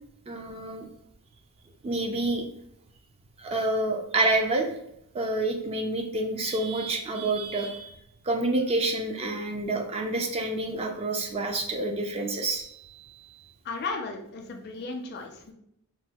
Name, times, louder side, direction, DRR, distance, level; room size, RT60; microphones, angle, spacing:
voice 1, 0.3-0.9 1.8-2.4 3.4-4.7 5.1-8.0 8.2-13.5, right 2 dB, 25° right, 2 dB, 0.3 m, -28 dB
voice 2, 13.6-15.5, left 3 dB, 45° left, 1 dB, 0.4 m, -35 dB
3.1 x 2.2 x 2.8 m, 0.75 s
head